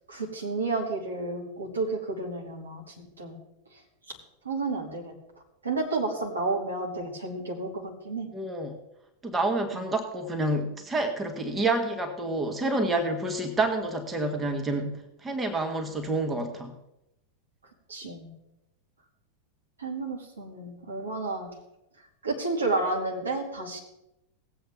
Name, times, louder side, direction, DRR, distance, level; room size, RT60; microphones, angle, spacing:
voice 1, 0.1-3.4 4.4-5.1 5.6-8.3 9.7-9.8 17.9-18.3 19.8-21.5 22.2-23.8, right 3 dB, 75° right, 0 dB, 2.4 m, -31 dB
voice 2, 8.3-8.8 9.2-16.8, right 2 dB, 15° right, 4 dB, 1.3 m, -28 dB
18.5 x 7.9 x 3.5 m, 0.87 s
figure-of-eight pair, 90°, 0 cm